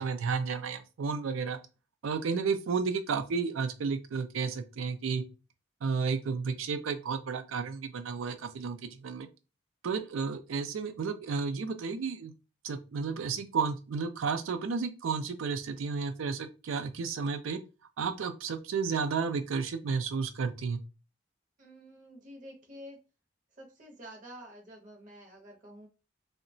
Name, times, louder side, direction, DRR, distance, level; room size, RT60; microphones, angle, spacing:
voice 1, 0.0-1.6 2.0-5.2 5.8-9.3 9.8-12.3 12.6-17.6 18.0-20.8, right 5 dB, 85° right, 0.4 m, -32 dB
voice 2, 21.6-23.0 23.5-25.9, equal, 40° right, 0.6 m, -49 dB
2.8 x 2.1 x 2.6 m
head